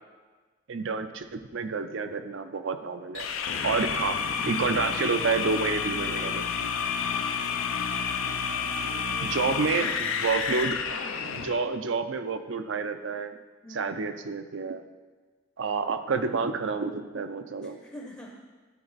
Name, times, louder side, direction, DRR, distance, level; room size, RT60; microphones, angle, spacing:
voice 1, 0.7-3.3 3.6-4.2 4.4-6.4 9.2-10.8 11.3-13.4 13.7-14.8 15.6-17.8, right 4 dB, 65° right, 9 dB, 0.5 m, -29 dB
sound 1, 3.1-11.6, left 6 dB, 75° left, 0.5 m, -30 dB
voice 2, 8.9-10.1 13.6-14.0 17.6-18.4, equal, 15° left, 0 dB, 0.6 m, -47 dB
12.0 x 4.4 x 4.1 m, 1.4 s
head